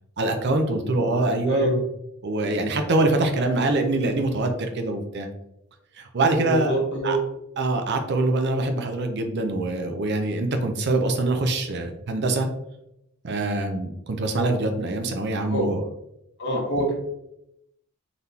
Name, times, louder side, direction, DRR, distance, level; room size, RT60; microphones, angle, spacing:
voice 1, 0.2-1.8 2.2-5.3 5.9-6.7 7.0-7.2 7.6-12.5 13.2-15.8, right 2 dB, 50° right, 6 dB, 0.5 m, -24 dB
voice 2, 6.4-7.2 15.5-15.7 16.4-16.9, equal, 50° left, -2 dB, 1.2 m, -25 dB
3.9 x 3.4 x 2.7 m, 0.81 s
head